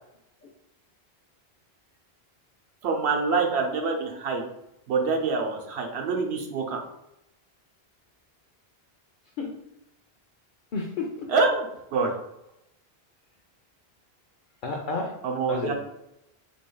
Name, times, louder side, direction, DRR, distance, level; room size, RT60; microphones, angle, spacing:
voice 1, 2.8-4.4 4.9-6.8 11.3-12.1 15.2-15.7, right 4 dB, 85° right, 1 dB, 0.9 m, -26 dB
voice 2, 10.7-11.3 14.6-15.1 15.5-15.7, left 3 dB, 60° left, 1 dB, 0.6 m, -31 dB
3.7 x 3.4 x 2.2 m, 0.84 s
omnidirectional pair, 1.1 m